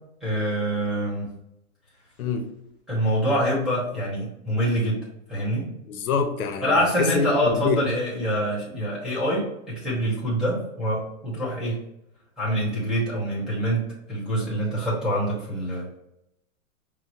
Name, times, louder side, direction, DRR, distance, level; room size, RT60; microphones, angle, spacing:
voice 1, 0.2-1.3 2.9-5.0 5.3-5.6 6.6-11.8 12.4-15.9, equal, ahead, 1.1 m, -25 dB
voice 2, 2.2-2.5 5.8-7.8, left 5 dB, 80° left, 0.8 m, -26 dB
6.0 x 2.0 x 3.0 m
hypercardioid pair, 160°, 42 cm